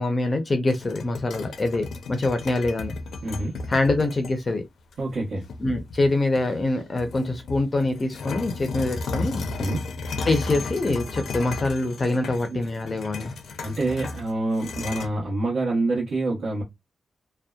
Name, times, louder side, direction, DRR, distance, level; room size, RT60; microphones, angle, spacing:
voice 1, 0.0-3.0 3.7-4.6 5.6-9.4 10.3-13.3, left 2 dB, 30° left, 0.4 m, -25 dB
sound 1, 0.7-4.3 4.9-5.0 5.5-6.6 7.0-15.1, left 3 dB, 80° left, 0.5 m, -34 dB
voice 2, 3.2-3.6 5.0-5.5 9.6-9.8 12.5-12.6 13.6-16.6, right 2 dB, 75° right, 1.0 m, -26 dB
2.7 x 2.1 x 2.2 m
wide cardioid pair, 130°, 0 cm